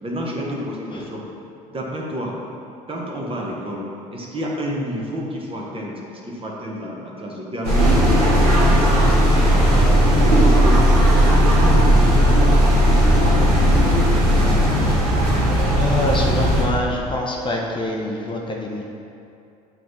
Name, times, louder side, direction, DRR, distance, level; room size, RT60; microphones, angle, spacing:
voice 1, 0.0-1.2 1.7-2.3 2.9-3.8 4.1-9.9 10.2-10.9 11.2-13.7, equal, 30° right, -2 dB, 1.2 m, -29 dB
sound 1, 7.6-16.6, equal, 85° right, 1.1 m, -16 dB
voice 2, 15.8-18.9, left 1 dB, 25° left, -2 dB, 0.8 m, -25 dB
7.7 x 3.2 x 4.1 m, 2.6 s
hypercardioid pair, 60°, 20 cm